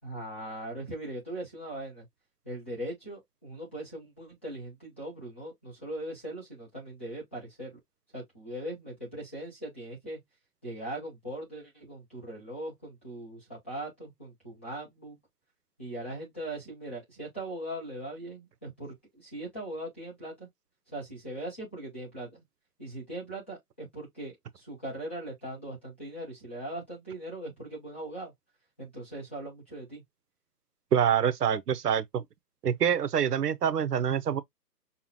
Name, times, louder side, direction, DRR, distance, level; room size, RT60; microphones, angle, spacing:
voice 1, 0.0-2.0 2.4-7.8 8.1-10.2 10.6-15.2 15.8-20.5 20.9-22.4 22.8-28.3 28.8-30.0, right 1 dB, 10° left, 0.6 m, -40 dB
voice 2, 30.9-32.2 32.6-34.4, right 8 dB, 75° right, 0.8 m, -26 dB
5.6 x 2.1 x 2.9 m
hypercardioid pair, 155°, 48 cm